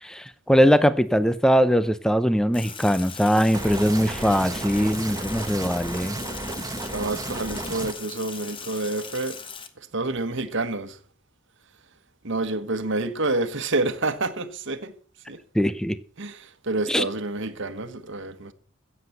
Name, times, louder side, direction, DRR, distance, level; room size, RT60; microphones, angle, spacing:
voice 1, 0.0-6.2 15.5-16.0 16.9-17.0, equal, 5° left, 0.5 m, -21 dB
Sink (filling or washing), 2.5-9.7, left 6 dB, 25° left, 1.2 m, -40 dB
sound 1, 3.5-7.9, right 2 dB, 15° right, 1.0 m, -33 dB
voice 2, 6.9-9.4 9.8-11.0 12.2-14.9 15.3-15.4 16.2-18.5, right 2 dB, 60° right, 1.3 m, -28 dB
15.5 x 7.9 x 6.6 m
head